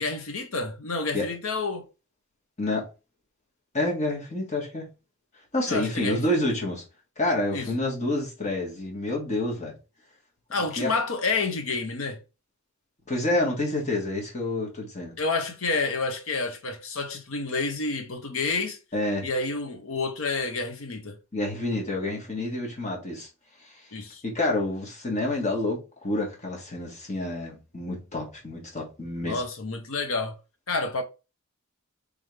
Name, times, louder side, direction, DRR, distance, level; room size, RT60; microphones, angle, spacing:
voice 1, 0.0-1.9 5.7-6.5 7.5-7.8 10.5-12.2 15.2-18.8 19.2-21.2 23.9-24.2 29.2-30.4 30.7-31.0, left 3 dB, 70° left, 0.8 m, -29 dB
voice 2, 3.7-4.9 5.5-6.8 7.2-9.7 10.8-10.9 13.1-15.1 18.9-19.3 21.3-23.3 24.2-29.4, left 2 dB, 35° left, 1.5 m, -28 dB
3.5 x 3.4 x 3.3 m
head